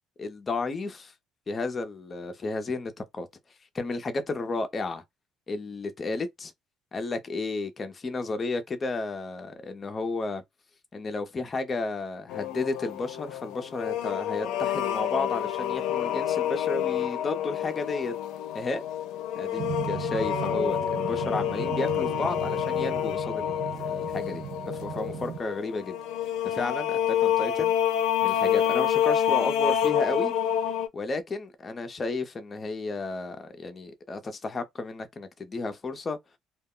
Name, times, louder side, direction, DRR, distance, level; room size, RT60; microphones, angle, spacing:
voice 1, 0.2-1.1 1.5-3.3 3.7-5.0 5.5-6.5 6.9-10.4 10.9-18.1 18.5-18.8 19.4-26.0 26.4-27.7 28.2-30.3 30.9-36.2, left 3 dB, 25° left, 0.5 m, -32 dB
sound 1, 12.3-30.9, left 10 dB, 85° left, 0.5 m, -28 dB
sound 2, 19.6-25.4, right 8 dB, 55° right, 0.4 m, -37 dB
2.2 x 2.0 x 3.6 m
cardioid pair, 140°, 0 cm